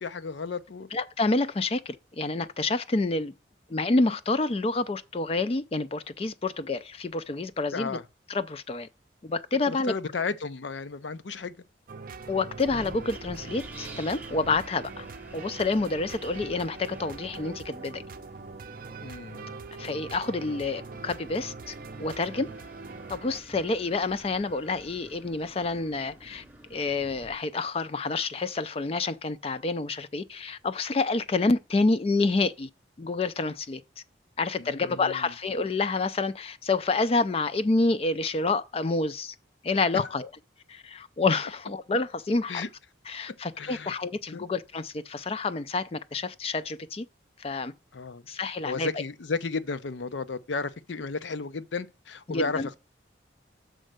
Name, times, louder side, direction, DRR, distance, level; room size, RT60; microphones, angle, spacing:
voice 1, 0.0-0.9 7.7-8.0 9.6-11.5 19.0-19.5 34.6-35.3 39.9-40.0 42.5-42.7 43.6-43.9 44.3-44.5 47.9-48.2 48.6-52.8, left 4 dB, 75° left, 0.6 m, -33 dB
voice 2, 0.9-3.3 3.7-8.0 8.3-8.9 9.2-9.9 12.3-15.1 15.3-18.0 19.8-22.5 23.1-26.4 26.7-32.7 33.0-33.8 34.4-39.3 39.6-40.3 40.7-42.6 43.1-47.1 47.4-47.7 48.3-48.9 52.3-52.7, left 3 dB, 30° left, 0.4 m, -28 dB
sound 1, 11.9-23.4, right 4 dB, 50° right, 0.5 m, -42 dB
Wind, 12.2-27.3, right 2 dB, 10° right, 0.8 m, -49 dB
6.4 x 4.4 x 6.5 m
head